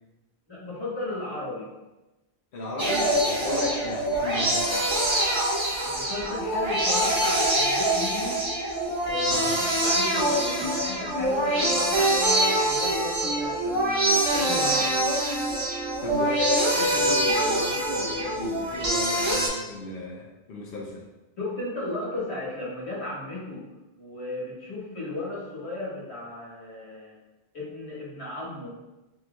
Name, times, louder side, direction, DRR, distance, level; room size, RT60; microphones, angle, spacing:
voice 1, 0.5-1.7 3.5-3.7 5.8-8.4 9.0-14.9 21.4-23.6 23.9-27.2 27.5-28.7, left 2 dB, 85° left, -8 dB, 1.7 m, -35 dB
voice 2, 2.5-4.8 9.3-9.6 16.0-21.1, left 2 dB, 65° left, -2 dB, 0.8 m, -34 dB
sound 1, 2.8-19.5, right 1 dB, 30° right, 0.7 m, -24 dB
6.2 x 3.0 x 2.2 m, 1.0 s
omnidirectional pair, 1.1 m